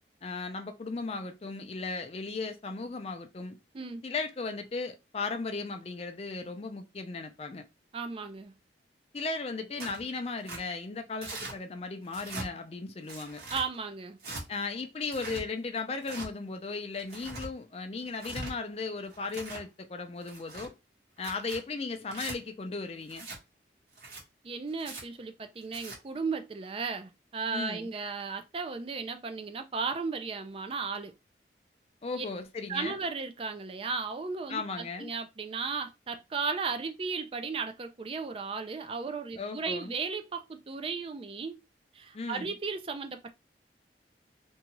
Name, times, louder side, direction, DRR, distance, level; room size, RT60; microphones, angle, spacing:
voice 1, 0.2-3.6 4.0-7.6 9.1-13.4 14.5-20.7 21.2-23.3 27.5-27.9 32.0-33.0 34.5-35.1 39.4-39.9 42.1-42.5, left 3 dB, 35° left, 0.4 m, -36 dB
voice 2, 7.9-8.5 13.5-14.2 24.4-31.1 32.2-32.3 32.7-41.6 41.9-43.3, right 4 dB, 30° right, 0.3 m, -35 dB
Tearing, 9.8-10.0 10.5-10.6 11.2-11.6 12.1-12.5 13.1-13.7 14.2-14.4 15.0-15.4 16.0-16.3 17.0-17.5 18.1-18.5 19.1-19.7 20.2-20.7 21.2-21.6 22.1-22.4 23.1-23.4 23.9-24.2 24.8-25.0 25.6-26.0, right 2 dB, 60° right, 1.2 m, -41 dB
2.6 x 2.3 x 2.9 m
head